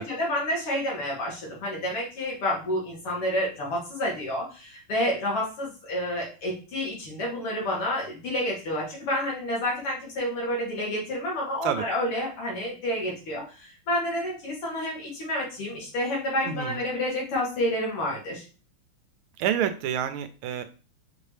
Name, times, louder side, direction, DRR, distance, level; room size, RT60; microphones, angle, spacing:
voice 1, 0.0-18.4, left 1 dB, 90° left, -3 dB, 2.8 m, -29 dB
voice 2, 16.4-16.8 19.4-20.6, right 9 dB, 80° right, 9 dB, 1.4 m, -28 dB
5.9 x 2.8 x 3.2 m, 0.34 s
omnidirectional pair, 2.4 m